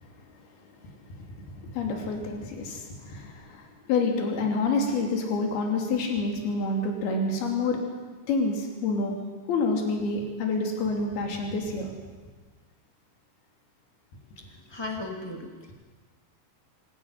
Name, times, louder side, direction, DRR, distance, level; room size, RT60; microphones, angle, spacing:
voice 1, 1.6-7.8 8.3-9.2 9.5-11.9, left 3 dB, 55° left, 1 dB, 4.7 m, -28 dB
voice 2, 14.4-15.7, left 2 dB, 20° left, 1 dB, 0.6 m, -37 dB
26.5 x 12.0 x 9.7 m, 1.4 s
omnidirectional pair, 5.4 m